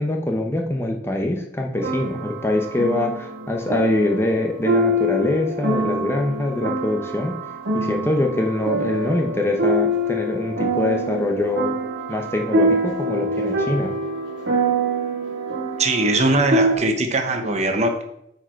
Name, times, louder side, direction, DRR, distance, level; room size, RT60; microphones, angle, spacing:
voice 1, 0.0-7.3 7.7-11.7 12.1-13.9, left 1 dB, 15° left, 2 dB, 0.8 m, -23 dB
sound 1, 1.8-16.8, right 1 dB, 85° right, 1.8 m, -25 dB
voice 2, 15.8-18.0, right 2 dB, 40° right, 5 dB, 1.0 m, -20 dB
8.6 x 5.0 x 4.5 m, 0.76 s
head